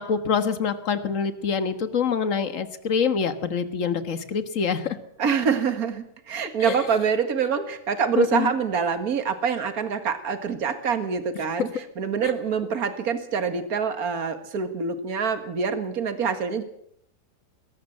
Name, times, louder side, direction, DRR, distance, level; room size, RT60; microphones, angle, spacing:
voice 1, 0.0-5.0 6.6-6.7 8.2-8.5 12.2-12.3, left 6 dB, 55° left, 10 dB, 1.8 m, -25 dB
voice 2, 5.2-16.6, right 6 dB, 70° right, 9 dB, 2.2 m, -26 dB
21.5 x 18.0 x 7.6 m, 0.70 s
omnidirectional pair, 1.6 m